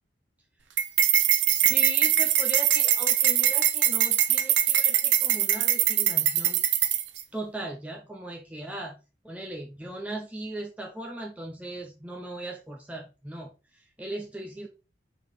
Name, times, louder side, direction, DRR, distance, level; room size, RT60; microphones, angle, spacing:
sound 1, 0.8-7.2, right 11 dB, 70° right, 0.7 m, -22 dB
voice 1, 1.5-6.6 7.3-9.0 9.2-14.7, right 2 dB, 5° right, 0 dB, 0.7 m, -38 dB
5.2 x 3.9 x 5.1 m, 0.30 s
head